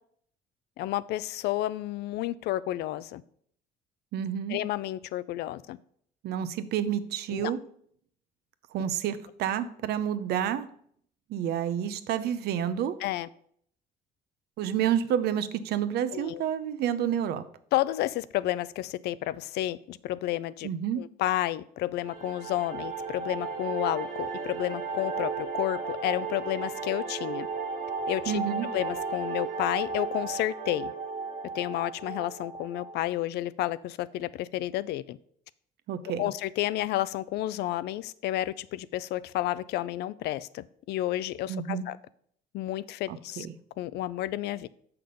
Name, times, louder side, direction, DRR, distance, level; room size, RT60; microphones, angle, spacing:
voice 1, 0.8-3.2 4.5-5.8 7.3-7.5 13.0-13.3 16.1-16.4 17.7-20.7 21.0-27.5 28.1-28.4 28.7-30.9 31.5-35.2 36.2-42.0 42.5-43.5 43.8-44.7, left 14 dB, 75° left, 18 dB, 0.4 m, -31 dB
voice 2, 4.1-4.6 6.2-7.6 8.7-10.7 11.3-13.0 14.6-17.4 20.6-21.0 28.3-28.7 35.9-36.2 41.5-41.8 43.1-43.5, right 9 dB, 75° right, 13 dB, 0.7 m, -29 dB
sound 1, 22.0-33.1, right 5 dB, 55° right, 1.7 m, -35 dB
6.8 x 5.9 x 5.1 m, 0.65 s
cardioid pair, 110°, 17 cm